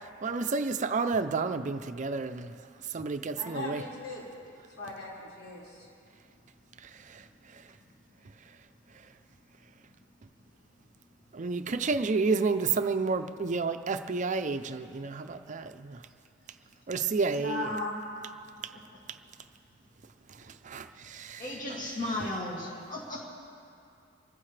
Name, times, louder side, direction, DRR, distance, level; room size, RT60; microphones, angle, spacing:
voice 1, 0.2-2.5 2.9-3.8 6.8-7.2 11.3-16.0 16.9-17.7 20.6-21.4, right 4 dB, 40° right, 9 dB, 0.5 m, -30 dB
voice 2, 3.4-4.2 4.8-5.7 17.3-18.0, left 2 dB, 75° left, -6 dB, 5.0 m, -37 dB
voice 3, 21.4-23.2, left 1 dB, 40° left, -4 dB, 2.2 m, -35 dB
25.5 x 14.5 x 3.3 m, 2.5 s
head